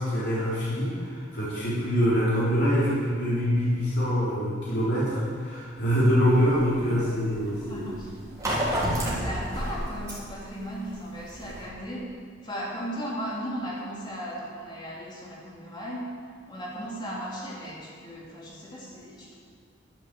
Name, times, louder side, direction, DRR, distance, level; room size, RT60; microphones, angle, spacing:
voice 1, 0.0-7.9, equal, 65° left, -9 dB, 3.8 m, -25 dB
sound 1, 6.3-11.6, equal, 20° right, 3.8 m, -31 dB
voice 2, 6.9-8.1 8.9-12.1 12.4-16.1 16.5-19.3, equal, 25° left, -5 dB, 3.1 m, -37 dB
12.0 x 8.1 x 7.7 m, 2.1 s
head